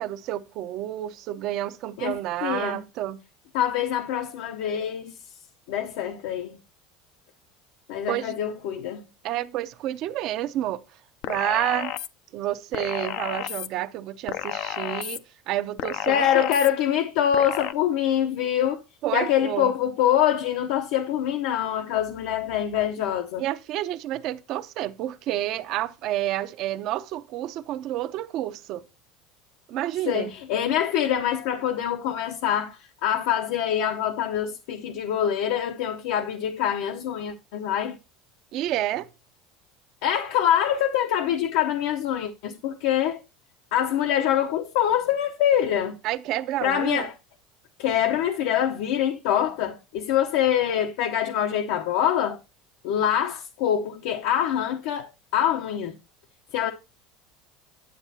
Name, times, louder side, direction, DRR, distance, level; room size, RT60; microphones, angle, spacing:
voice 1, 0.0-3.2 8.1-8.4 9.2-10.8 11.3-11.9 12.3-16.5 19.0-19.7 23.4-28.8 29.7-30.3 38.5-39.1 46.0-47.1, right 13 dB, 50° right, 0.7 m, -29 dB
voice 2, 2.0-2.8 3.5-5.1 5.7-6.6 7.9-9.0 16.1-18.8 19.1-23.4 30.1-38.0 40.0-43.2 43.7-45.9 46.6-47.1 47.8-52.4 52.8-56.0 56.5-56.7, left 10 dB, 70° left, 0.8 m, -25 dB
sound 1, 11.2-12.1 12.7-13.7 14.3-15.2 15.8-16.7 17.3-17.7, left 13 dB, 50° left, 0.5 m, -31 dB
9.6 x 8.2 x 2.8 m
cardioid pair, 155°, 0 cm